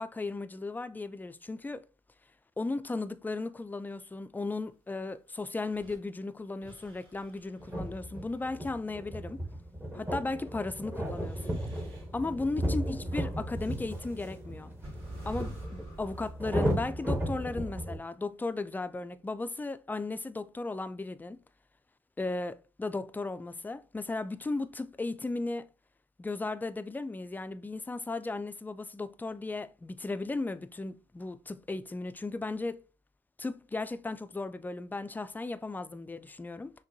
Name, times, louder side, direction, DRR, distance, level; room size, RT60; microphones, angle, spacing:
voice 1, 0.0-1.8 2.6-9.4 9.9-11.6 12.1-14.7 15.3-21.4 22.2-25.7 26.2-32.8 33.4-36.7, left 3 dB, 15° left, 0.3 m, -36 dB
sound 1, 5.7-6.0 6.6-8.7 11.0-12.1 13.6-13.7 14.8-16.4, right 1 dB, 45° right, 2.2 m, -45 dB
sound 2, 7.6-18.0, right 1 dB, 15° right, 1.0 m, -35 dB
6.0 x 2.2 x 2.6 m
hypercardioid pair, 50°, 13 cm